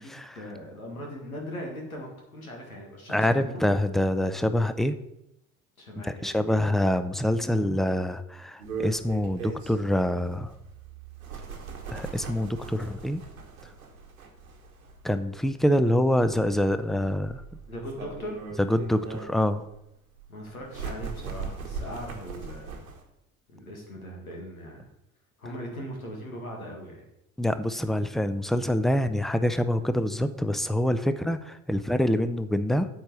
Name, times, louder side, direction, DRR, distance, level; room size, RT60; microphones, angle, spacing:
voice 1, 0.0-3.6 5.8-6.4 17.7-18.4 20.3-22.8 23.5-24.9 25.4-27.0, equal, 85° left, 0 dB, 1.9 m, -39 dB
voice 2, 3.1-5.0 6.1-10.5 11.9-13.2 15.0-17.4 18.6-19.7 27.4-32.9, left 1 dB, ahead, 11 dB, 0.6 m, -25 dB
sound 1, 8.6-23.0, right 5 dB, 85° right, 1.3 m, -40 dB
8.8 x 4.7 x 6.9 m, 0.83 s
figure-of-eight pair, 60°, 42 cm